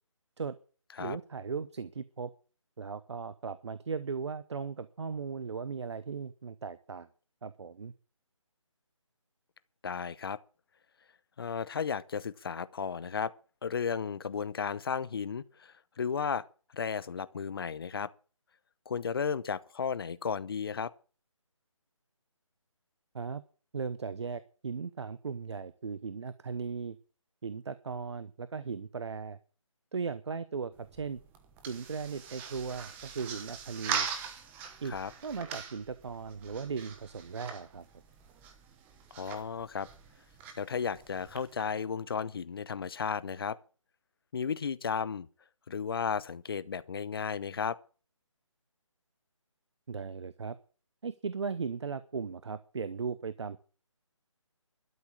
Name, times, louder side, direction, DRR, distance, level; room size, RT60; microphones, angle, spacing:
voice 1, 1.0-2.3 2.8-7.1 7.4-7.9 23.1-23.4 23.7-27.0 27.4-29.4 29.9-31.2 31.7-34.1 34.8-34.9 35.2-37.9 49.9-50.6 51.0-53.6, right 5 dB, 55° right, 0.9 m, -37 dB
voice 2, 9.8-10.4 11.4-13.3 13.6-16.4 16.7-18.1 18.9-20.9 34.9-35.1 39.1-39.9 40.6-43.6 44.3-45.3 45.7-47.8, left 6 dB, 45° left, 0.8 m, -34 dB
sound 1, 30.7-41.6, right 7 dB, 10° right, 1.1 m, -42 dB
12.5 x 7.2 x 8.6 m
figure-of-eight pair, 160°, 17 cm